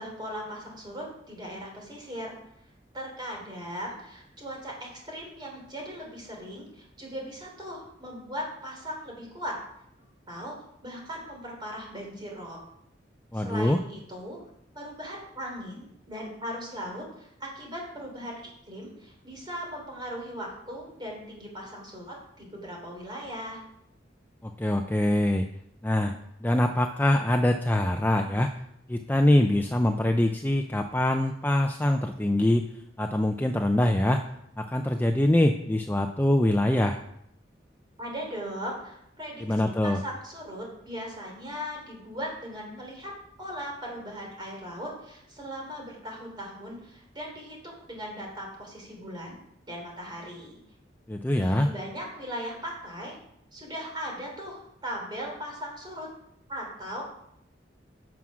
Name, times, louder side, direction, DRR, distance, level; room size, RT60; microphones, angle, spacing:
voice 1, 0.0-2.4 2.9-9.6 10.3-10.6 10.8-12.6 13.3-14.4 14.7-18.4 18.7-23.6 38.0-43.1 43.4-49.4 49.6-50.6 51.3-53.2 53.5-56.1 56.5-57.0, equal, 25° right, -1 dB, 3.1 m, -38 dB
voice 2, 13.3-13.8 24.4-25.5 25.8-26.2 26.4-28.5 28.9-32.6 33.0-34.2 34.6-37.0 39.4-40.0 51.1-51.7, left 1 dB, 10° left, 5 dB, 0.4 m, -24 dB
9.4 x 6.0 x 6.2 m, 0.75 s
head